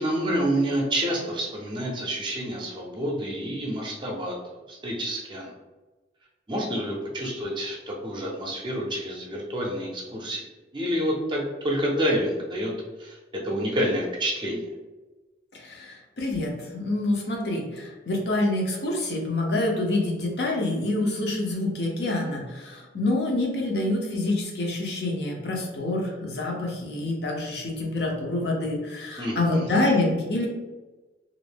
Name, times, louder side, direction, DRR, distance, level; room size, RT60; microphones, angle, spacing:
voice 1, 0.0-5.5 6.5-10.4 10.7-12.7 13.0-13.2 13.4-14.7 29.2-29.7, equal, 25° right, -1 dB, 0.5 m, -28 dB
voice 2, 15.5-30.5, left 2 dB, 65° left, -1 dB, 0.6 m, -27 dB
2.5 x 2.1 x 3.3 m, 1.2 s
head